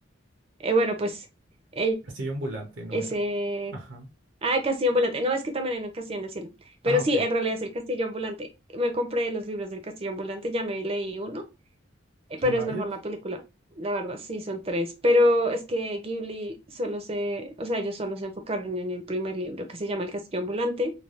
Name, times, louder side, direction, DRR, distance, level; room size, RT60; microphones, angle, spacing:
voice 1, 0.6-1.3 1.7-2.0 2.9-3.8 4.4-6.5 6.8-8.5 8.7-11.4 12.3-13.4 13.8-20.9, equal, 30° right, 0.5 m, -27 dB
voice 2, 2.1-3.2 3.7-4.1 6.8-7.2 12.4-12.9, right 1 dB, 80° right, 0.7 m, -34 dB
3.2 x 2.3 x 2.4 m
head